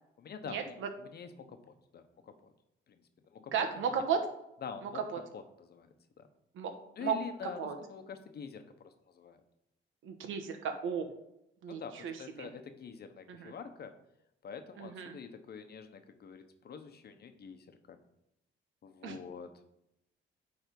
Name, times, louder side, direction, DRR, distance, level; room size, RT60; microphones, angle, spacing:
voice 1, 0.2-2.5 2.9-4.0 4.6-5.0 5.3-5.9 6.2-6.3 7.0-9.4 11.7-13.9 14.4-18.0 18.8-19.5, left 6 dB, 55° left, 8 dB, 1.0 m, -46 dB
voice 2, 3.5-4.2 6.6-6.7 7.0-7.1 7.6-7.7 10.0-11.0 11.6-12.1 12.4-12.5 13.3-13.5 14.8-15.2 19.0-19.2, right 7 dB, 80° right, 6 dB, 1.2 m, -34 dB
9.2 x 3.6 x 5.3 m, 0.82 s
cardioid pair, 90°, 20 cm